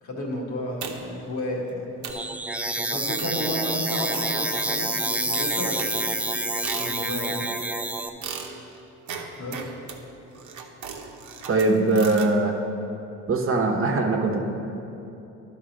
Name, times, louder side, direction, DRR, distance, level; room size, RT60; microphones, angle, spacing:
voice 1, 0.0-1.9 2.8-6.2 6.7-7.5 9.4-9.7, equal, 70° left, -2 dB, 1.7 m, -32 dB
sound 1, 0.8-1.3 1.7-1.8 2.0-2.3 3.2-3.5 4.1-4.9 5.3-7.3 8.2-12.3, right 6 dB, 70° right, 0.9 m, -38 dB
sound 2, 2.1-8.1, right 1 dB, 5° right, 0.4 m, -28 dB
voice 2, 11.5-12.5 13.3-14.4, right 2 dB, 45° right, 2 dB, 1.0 m, -21 dB
11.5 x 4.0 x 5.2 m, 3.0 s
cardioid pair, 80°, 31 cm